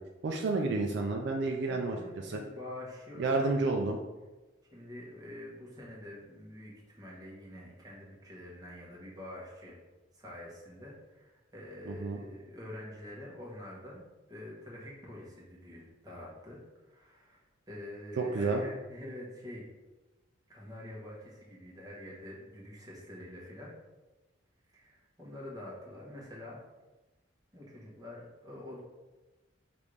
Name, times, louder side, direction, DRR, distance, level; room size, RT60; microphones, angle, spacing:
voice 1, 0.2-2.0 2.2-2.4 3.2-4.0 11.9-12.2 18.2-18.6, right 3 dB, 60° right, 2 dB, 0.4 m, -30 dB
voice 2, 1.7-3.6 4.7-9.8 10.1-14.0 14.3-19.6 20.5-23.7 24.7-26.6 27.5-28.8, left 1 dB, 20° right, -4 dB, 1.1 m, -46 dB
5.1 x 2.6 x 3.2 m, 1.1 s
head